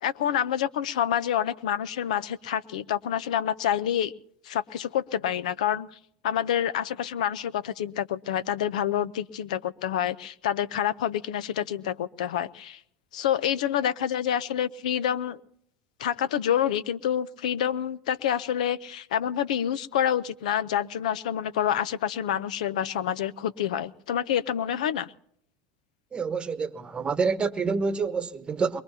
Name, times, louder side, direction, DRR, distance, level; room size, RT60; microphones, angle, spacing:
voice 1, 0.0-4.1 4.4-5.9 6.2-12.8 13.1-15.4 16.0-25.1, left 10 dB, 85° left, 0.6 m, -27 dB
voice 2, 26.1-28.8, right 5 dB, 25° right, 1.1 m, -27 dB
22.5 x 22.0 x 2.8 m
hypercardioid pair, 90°, 4 cm